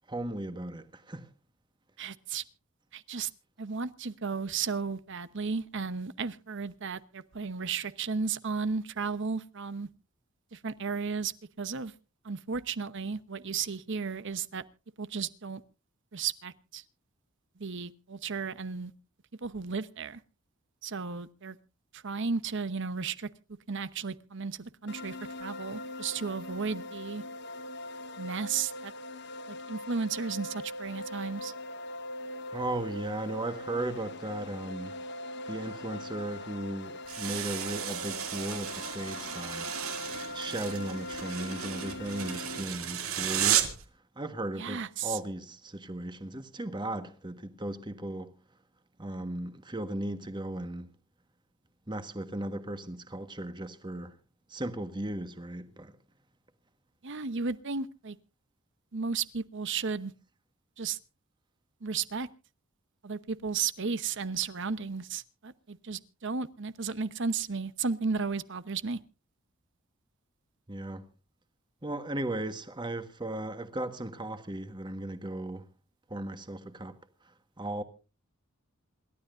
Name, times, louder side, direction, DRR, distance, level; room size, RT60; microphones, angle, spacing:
voice 1, 0.1-1.3 32.5-35.0 35.5-39.7 40.3-43.7 44.1-48.3 49.0-50.9 51.9-54.2 54.5-56.0 70.7-71.0 71.8-75.7 76.1-77.0 77.6-77.8, right 1 dB, 20° right, 1.4 m, -36 dB
voice 2, 2.0-2.4 2.9-3.3 3.6-9.9 10.5-11.9 12.2-14.6 15.0-15.6 16.1-16.8 17.6-18.9 19.4-20.2 20.8-21.6 21.9-23.3 23.7-27.2 28.2-28.9 29.5-31.5 44.5-45.2 57.0-58.2 58.9-60.1 60.8-61.0 61.8-62.3 63.0-69.0, right 5 dB, 60° right, 0.9 m, -34 dB
sound 1, 24.9-42.6, left 1 dB, 55° left, 0.8 m, -41 dB
sound 2, 37.1-43.8, right 9 dB, 80° right, 2.5 m, -33 dB
27.0 x 12.5 x 2.6 m
head